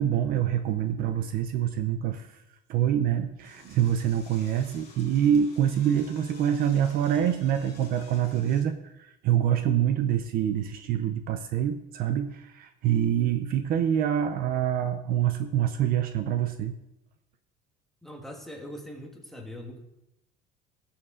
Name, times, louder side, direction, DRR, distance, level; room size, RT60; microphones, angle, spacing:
voice 1, 0.0-2.4 2.7-16.7, right 10 dB, 45° right, 9 dB, 0.6 m, -26 dB
Door / Toilet flush, 3.4-8.6, left 3 dB, 40° left, 4.4 m, -53 dB
voice 2, 18.0-19.8, equal, ahead, 1 dB, 1.3 m, -41 dB
17.5 x 7.2 x 3.7 m, 0.89 s
cardioid pair, 180°, 20 cm